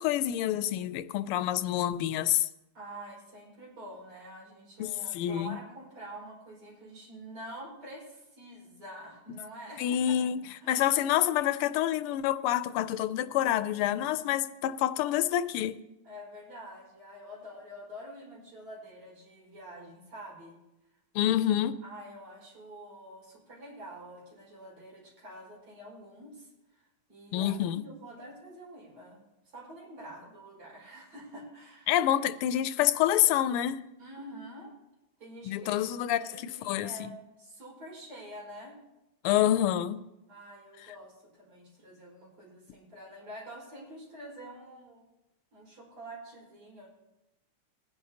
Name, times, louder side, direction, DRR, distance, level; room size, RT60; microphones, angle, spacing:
voice 1, 0.0-2.5 4.8-5.6 9.8-10.4 10.7-15.8 21.1-21.8 27.3-27.8 31.9-33.8 35.5-37.1 39.2-40.0, left 12 dB, 85° left, 1.5 m, -27 dB
voice 2, 2.7-10.2 10.6-11.0 16.0-20.6 21.8-26.5 26.7-26.8 27.1-31.9 34.0-34.7 35.2-35.9 36.1-38.7 40.3-45.1 45.5-46.9, right 1 dB, 85° right, 5.7 m, -47 dB
20.5 x 10.5 x 2.8 m
omnidirectional pair, 2.4 m